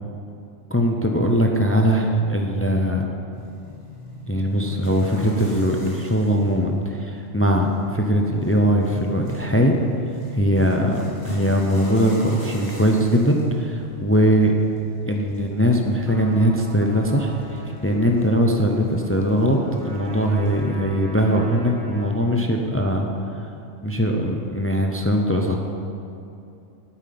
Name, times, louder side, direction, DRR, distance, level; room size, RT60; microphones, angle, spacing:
voice 1, 0.7-3.1 4.3-9.7 10.3-14.5 15.1-23.1 23.8-25.6, equal, 15° left, 2 dB, 0.6 m, -21 dB
sound 1, 3.3-20.6, equal, 75° left, 2.2 m, -40 dB
Trumpet, 16.0-22.3, right 1 dB, 45° left, 2.3 m, -43 dB
9.0 x 8.9 x 6.0 m, 2.6 s
omnidirectional pair, 1.2 m